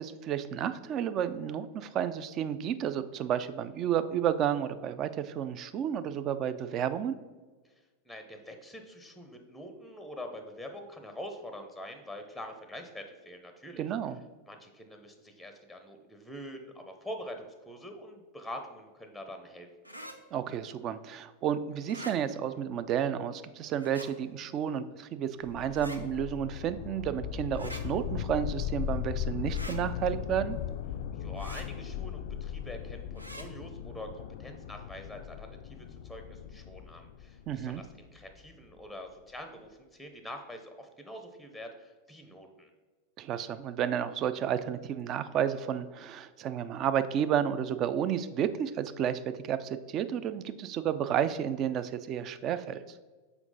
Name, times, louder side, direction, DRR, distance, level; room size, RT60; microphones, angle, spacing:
voice 1, 0.0-7.2 13.8-14.2 20.3-30.6 37.5-37.8 43.2-52.8, right 9 dB, 35° right, 12 dB, 0.4 m, -31 dB
voice 2, 8.0-13.9 14.5-19.7 31.2-42.7, equal, ahead, 6 dB, 0.6 m, -45 dB
sound 1, 19.8-20.2 21.8-22.2 23.8-24.1 25.7-26.0 27.5-27.8 29.5-29.8 31.4-31.7 33.2-33.5, equal, 85° right, 0.6 m, -44 dB
sound 2, 25.4-38.5, left 9 dB, 55° left, 0.3 m, -38 dB
5.9 x 4.5 x 3.8 m, 1.3 s
figure-of-eight pair, 90°, 0 cm